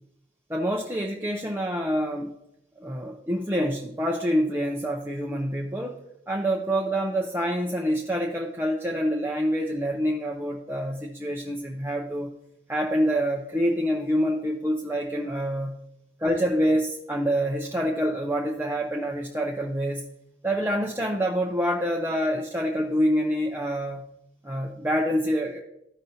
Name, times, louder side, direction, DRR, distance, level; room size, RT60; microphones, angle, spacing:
voice 1, 0.5-2.3 2.8-6.0 6.3-12.3 12.7-15.7 16.2-20.0 20.4-24.0 24.4-25.6, equal, 10° right, -1 dB, 0.6 m, -26 dB
15.0 x 5.3 x 2.7 m, 0.84 s
head